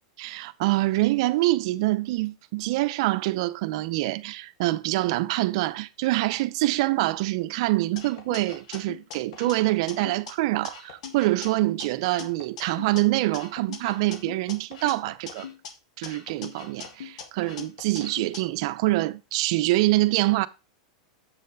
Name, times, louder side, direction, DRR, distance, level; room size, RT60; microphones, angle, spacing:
voice 1, 0.2-15.5 16.0-20.5, right 18 dB, 60° right, 0.6 m, -25 dB
sound 1, 8.0-10.3 10.6-13.0 13.3-15.7 16.0-18.4, left 6 dB, 70° left, 1.7 m, -41 dB
7.6 x 6.5 x 3.9 m
supercardioid pair, 135°, 4 cm